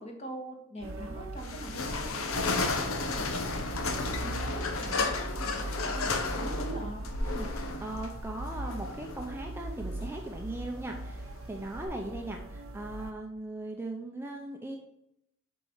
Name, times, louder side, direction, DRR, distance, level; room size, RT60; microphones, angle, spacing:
voice 1, 0.0-7.1, equal, 30° left, 1 dB, 1.7 m, -42 dB
sound 1, 0.8-13.1, right 2 dB, 65° right, 0.7 m, -40 dB
sound 2, 1.4-11.8, left 3 dB, 80° left, 1.1 m, -34 dB
voice 2, 7.3-14.8, right 1 dB, 10° right, 2 dB, 0.6 m, -39 dB
7.4 x 4.7 x 5.6 m, 0.78 s
head